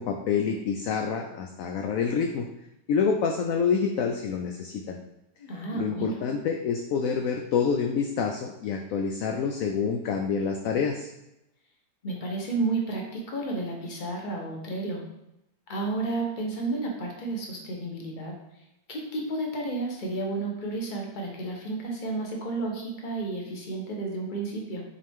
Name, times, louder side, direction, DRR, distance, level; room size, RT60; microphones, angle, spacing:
voice 1, 0.0-2.5 2.9-5.0 5.7-11.1, left 6 dB, 70° left, 3 dB, 0.9 m, -27 dB
voice 2, 5.4-6.2 12.0-15.0 15.7-18.3 18.9-24.8, right 3 dB, 30° left, 0 dB, 1.1 m, -31 dB
6.1 x 4.4 x 3.6 m, 0.86 s
omnidirectional pair, 1.8 m